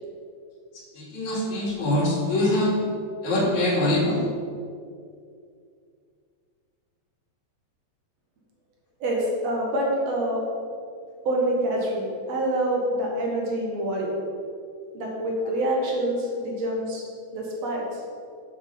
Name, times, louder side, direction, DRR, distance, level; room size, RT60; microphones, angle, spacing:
voice 1, 1.0-2.8 3.2-4.2, left 1 dB, 70° left, -6 dB, 3.8 m, -23 dB
voice 2, 9.0-10.4 11.3-14.2 14.9-17.0 17.3-18.0, right 1 dB, 65° right, -2 dB, 2.6 m, -26 dB
7.9 x 6.9 x 5.7 m, 2.3 s
omnidirectional pair, 3.4 m